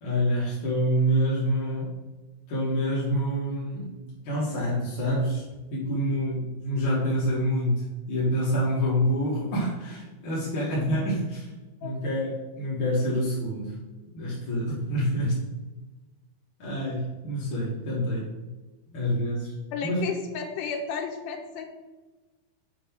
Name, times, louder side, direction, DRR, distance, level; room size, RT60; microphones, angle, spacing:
voice 1, 0.0-1.9 2.5-5.4 5.7-11.5 11.8-13.8 14.1-15.4 16.6-18.3 18.9-19.5 19.8-20.0, equal, 50° left, -7 dB, 1.6 m, -27 dB
voice 2, 19.7-21.6, left 6 dB, 90° left, 2 dB, 1.9 m, -32 dB
7.3 x 3.2 x 5.9 m, 1.2 s
omnidirectional pair, 4.5 m